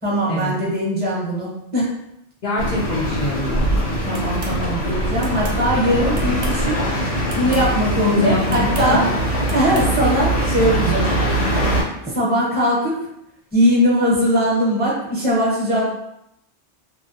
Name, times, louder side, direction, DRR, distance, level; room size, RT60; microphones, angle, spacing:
voice 1, 0.0-1.9 4.0-6.8 7.3-9.0 9.5-11.1 12.0-13.0 13.5-15.9, equal, 10° right, -6 dB, 0.7 m, -20 dB
voice 2, 2.4-3.7 8.1-9.0, left 2 dB, 60° left, -5 dB, 0.4 m, -24 dB
sound 1, 2.6-11.8, right 1 dB, 90° left, 1.4 m, -22 dB
sound 2, 4.1-4.6 5.2-5.6 6.1-6.7 7.3-7.7 8.5-8.9 9.5-9.9, right 3 dB, 60° right, 0.6 m, -37 dB
2.7 x 2.0 x 2.6 m, 0.80 s
omnidirectional pair, 1.2 m